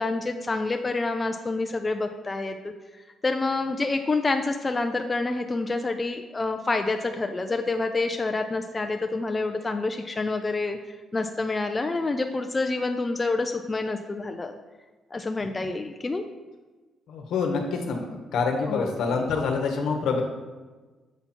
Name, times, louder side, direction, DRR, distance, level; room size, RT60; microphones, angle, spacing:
voice 1, 0.0-2.7 3.2-10.8 11.1-14.6 15.1-16.2 18.7-19.0, left 3 dB, 25° left, 6 dB, 0.4 m, -27 dB
voice 2, 17.1-20.2, left 4 dB, 80° left, 3 dB, 1.0 m, -26 dB
6.9 x 4.3 x 4.3 m, 1.3 s
cardioid pair, 90°, 0 cm